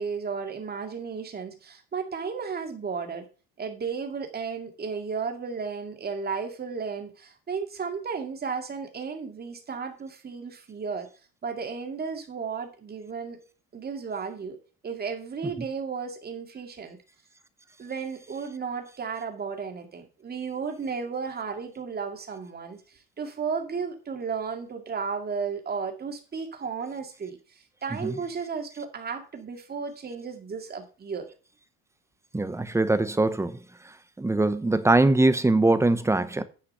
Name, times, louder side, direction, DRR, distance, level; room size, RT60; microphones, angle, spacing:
voice 1, 0.0-3.3 3.6-11.1 11.4-13.4 13.7-14.6 14.8-17.0 17.8-22.8 23.2-27.4 27.8-31.3, right 5 dB, 30° right, 2.2 m, -34 dB
voice 2, 32.3-33.6 34.2-36.4, right 2 dB, 10° right, 0.8 m, -22 dB
10.0 x 5.6 x 5.5 m
cardioid pair, 125°, 34 cm